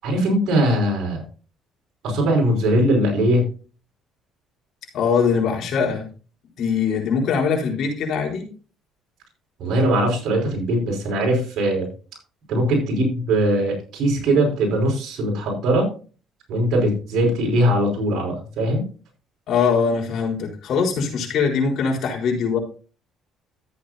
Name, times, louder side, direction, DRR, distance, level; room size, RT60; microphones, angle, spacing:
voice 1, 0.0-1.2 2.0-3.5 9.6-11.9 12.5-15.9 16.5-18.8, right 1 dB, 70° right, -1 dB, 5.1 m, -20 dB
voice 2, 4.9-6.1 6.6-8.5 19.5-22.6, left 5 dB, 65° left, 0 dB, 4.2 m, -22 dB
14.0 x 8.5 x 2.8 m, 0.36 s
cardioid pair, 95°, 0 cm